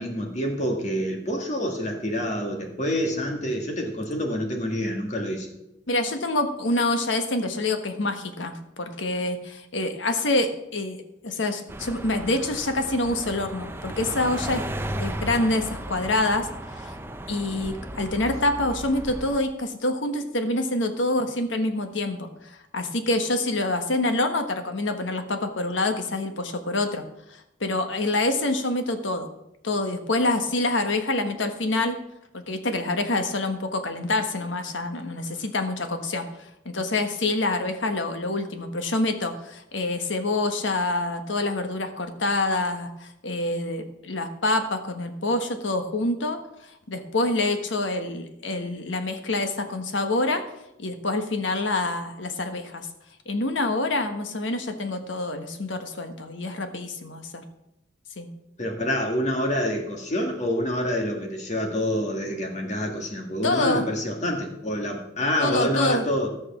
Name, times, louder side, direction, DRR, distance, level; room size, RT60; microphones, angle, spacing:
voice 1, 0.0-5.5 58.6-66.3, equal, 40° left, 2 dB, 1.9 m, -27 dB
voice 2, 5.9-14.6 15.0-16.9 17.3-27.0 27.3-29.3 29.6-32.0 32.3-36.3 36.6-46.4 46.9-50.4 50.8-52.9 53.2-57.4 58.2-58.3 63.4-63.9 65.4-66.0, left 2 dB, 80° left, 7 dB, 1.3 m, -26 dB
sound 1, 11.7-19.4, right 1 dB, 10° right, 0.6 m, -35 dB
14.0 x 6.4 x 6.1 m, 0.86 s
head